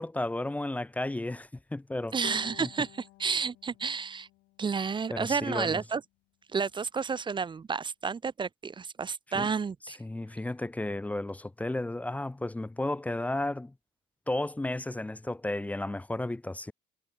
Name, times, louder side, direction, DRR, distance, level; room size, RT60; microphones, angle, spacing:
voice 1, 0.0-2.2 2.6-2.7 5.1-5.8 9.3-9.5 9.9-13.7 14.3-16.7, left 1 dB, 10° left, 0.5 m, -33 dB
voice 2, 2.1-4.3 4.6-6.0 6.5-10.0, right 5 dB, 30° right, 1.0 m, -31 dB
Bowed string instrument, 2.2-5.3, left 20 dB, 90° left, 4.2 m, -51 dB
cardioid pair, 110°, 17 cm